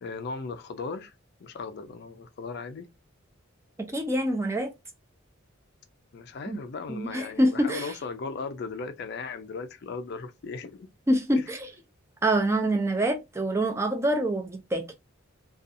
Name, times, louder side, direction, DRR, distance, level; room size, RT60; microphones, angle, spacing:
voice 1, 0.0-1.1 1.4-2.9 6.1-10.9 11.3-11.4, left 4 dB, 50° left, 0.4 m, -37 dB
voice 2, 3.9-4.7 6.9-7.9 11.1-11.7 12.2-14.8, right 1 dB, 15° right, 0.4 m, -25 dB
2.5 x 2.3 x 2.5 m
head